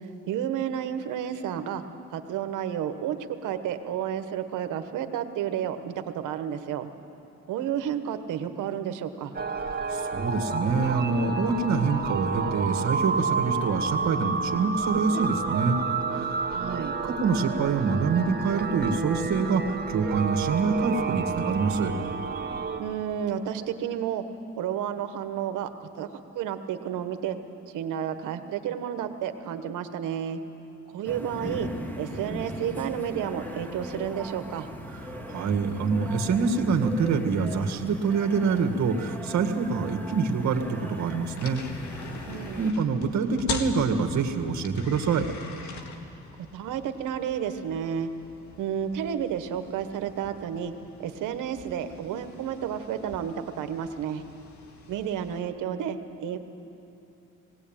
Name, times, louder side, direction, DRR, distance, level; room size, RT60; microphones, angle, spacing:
voice 1, 0.0-1.8 2.1-3.2 3.4-6.9 7.5-9.3 16.5-17.0 22.8-24.2 24.6-26.1 26.3-27.4 27.7-30.4 30.9-31.7 32.0-34.7 42.3-42.7 46.5-48.1 48.6-50.7 51.0-54.2 54.9-56.4, right 9 dB, 85° right, 8 dB, 1.3 m, -31 dB
sound 1, 9.3-22.8, right 4 dB, 30° right, 1.7 m, -30 dB
voice 2, 9.9-15.8 16.1-16.4 17.0-21.9 35.3-41.6 42.6-45.3, right 5 dB, 65° right, 5 dB, 1.9 m, -26 dB
sound 2, 31.0-42.7, equal, 5° left, 2.0 m, -39 dB
sound 3, 40.4-55.4, left 5 dB, 70° left, 1.9 m, -42 dB
19.0 x 18.5 x 8.9 m, 2.8 s
cardioid pair, 90°, 30 cm